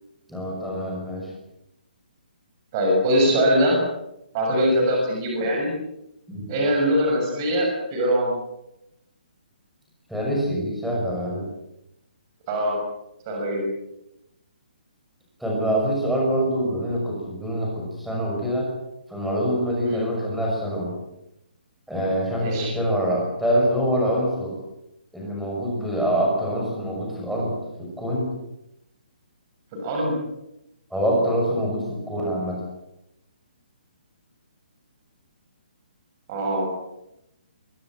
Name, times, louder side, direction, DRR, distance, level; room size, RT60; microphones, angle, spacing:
voice 1, 0.3-1.3 6.3-6.5 10.1-11.5 15.4-18.7 19.1-20.9 21.9-24.6 25.1-28.3 30.9-32.6, equal, ahead, -3 dB, 5.9 m, -25 dB
voice 2, 2.7-3.8 4.3-5.7 6.5-8.3 12.5-12.7 13.2-13.6 19.8-20.1 22.4-22.7 29.7-30.2 36.3-36.7, equal, 20° right, 0 dB, 6.8 m, -22 dB
23.0 x 23.0 x 7.6 m, 0.85 s
hypercardioid pair, 175°, 5 cm